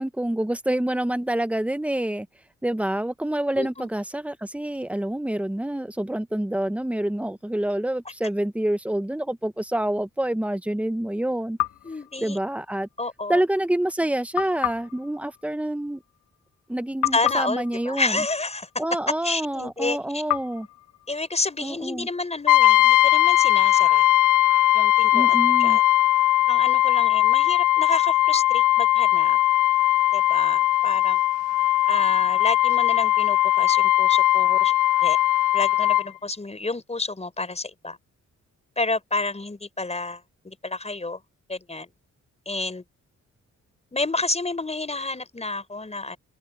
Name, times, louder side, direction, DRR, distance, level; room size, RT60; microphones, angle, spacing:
voice 1, 0.0-2.3 2.6-11.6 12.2-12.9 13.3-16.0 16.7-18.2 18.8-20.7 21.6-22.1 25.1-25.8, right 1 dB, 5° right, 0.9 m, -27 dB
voice 2, 3.6-3.9 11.8-12.4 13.0-13.4 17.1-18.7 19.2-20.2 21.1-24.1 24.7-25.8 26.5-29.4 30.1-31.2 31.9-34.7 35.0-35.2 35.5-38.0 38.8-41.2 41.5-41.9 42.5-42.8 43.9-46.2, left 3 dB, 20° left, 5.7 m, -30 dB
sound 1, 11.6-12.9 14.3-16.7 17.0-19.3 20.3-22.1, left 14 dB, 60° left, 1.4 m, -33 dB
Brass instrument, 22.5-36.1, left 15 dB, 85° left, 0.5 m, -19 dB
cardioid pair, 100°, 31 cm